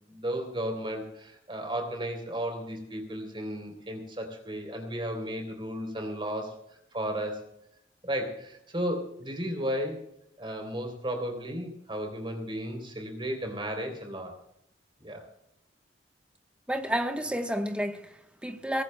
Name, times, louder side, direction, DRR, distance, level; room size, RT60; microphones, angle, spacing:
voice 1, 0.1-6.5 6.9-7.4 8.0-10.0 10.4-14.3 15.0-15.3, equal, 25° right, 3.3 m, -34 dB
voice 2, 16.7-18.8, equal, 5° right, 1.0 m, -31 dB
23.0 x 18.0 x 2.2 m
head